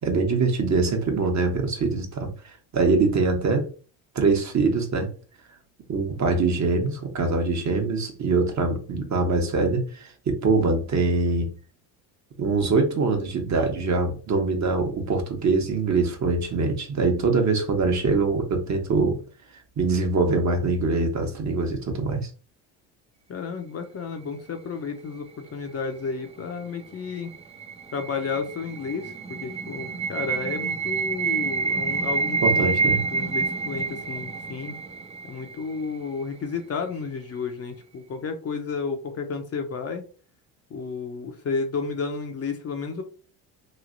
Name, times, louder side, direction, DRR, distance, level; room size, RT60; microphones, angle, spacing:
voice 1, 0.0-3.7 4.1-5.1 5.9-11.5 12.4-19.2 19.8-22.3 32.4-33.0, right 3 dB, 40° right, 4 dB, 1.0 m, -23 dB
voice 2, 23.3-27.3 27.9-34.7 35.2-40.0 40.7-43.0, left 5 dB, 30° left, 5 dB, 0.7 m, -32 dB
Subliminal Scream, 26.9-35.8, right 4 dB, 15° right, 0.4 m, -28 dB
3.1 x 2.7 x 2.6 m, 0.37 s
hypercardioid pair, 70°, 46 cm